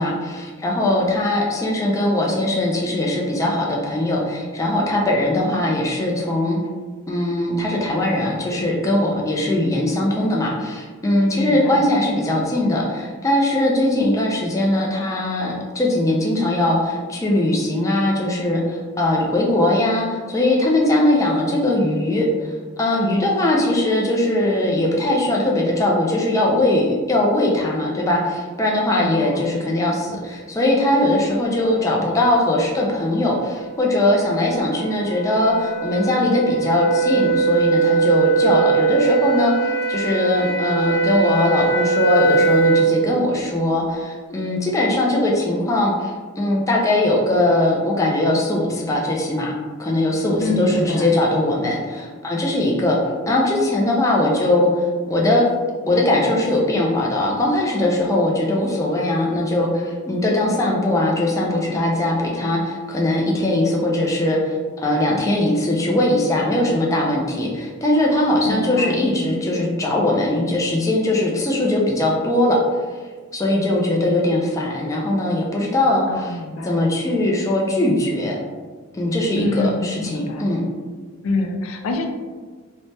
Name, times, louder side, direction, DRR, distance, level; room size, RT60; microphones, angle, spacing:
voice 1, 0.0-6.6 7.1-49.5 49.8-53.0 53.3-55.5 55.9-72.6 73.3-76.4 76.6-78.4 78.9-80.6, left 1 dB, 15° left, -2 dB, 0.4 m, -20 dB
voice 2, 11.4-11.9 29.0-29.5 50.4-51.1 68.4-69.1 76.1-76.8 79.4-80.5 81.2-82.1, left 2 dB, 80° left, 4 dB, 0.4 m, -26 dB
sound 1, 33.0-43.0, right 5 dB, 65° left, 0.9 m, -21 dB
3.2 x 2.1 x 2.7 m, 1.4 s
head